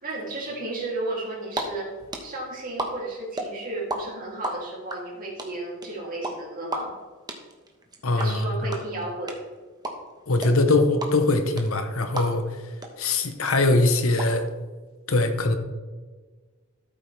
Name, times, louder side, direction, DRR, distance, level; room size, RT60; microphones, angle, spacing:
voice 1, 0.0-1.9 2.2-6.9 8.1-9.4, right 2 dB, 40° right, -3 dB, 3.0 m, -33 dB
sound 1, 1.2-1.6 1.9-4.0 4.2-12.5 12.8-12.9 13.2-14.2, right 2 dB, 20° right, 1.2 m, -32 dB
voice 2, 8.0-8.8 10.3-12.4 13.0-14.5 15.1-15.5, left 2 dB, 70° left, 8 dB, 1.0 m, -22 dB
13.0 x 7.6 x 3.4 m, 1.4 s
head